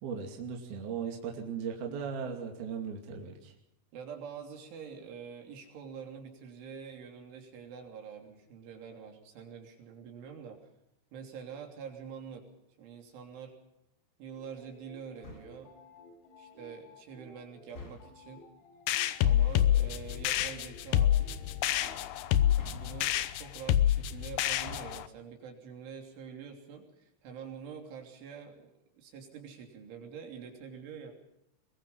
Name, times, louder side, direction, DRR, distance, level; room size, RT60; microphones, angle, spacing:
voice 1, 0.0-3.5, right 6 dB, 55° right, 2 dB, 4.1 m, -37 dB
voice 2, 3.9-10.6 11.1-12.5 12.8-13.6 14.2-15.7 16.4-18.5 19.2-22.3 22.7-28.7 29.0-31.1, right 6 dB, 75° right, 3 dB, 5.6 m, -46 dB
sound 1, 14.3-22.5, left 1 dB, 55° left, 8.2 m, -56 dB
sound 2, 15.2-15.7 17.7-18.3 20.3-20.8 22.5-23.3 24.5-25.2, left 2 dB, 25° left, 2.5 m, -49 dB
sound 3, 18.9-25.1, left 11 dB, 75° left, 2.6 m, -27 dB
22.5 x 21.5 x 5.6 m, 0.84 s
omnidirectional pair, 5.7 m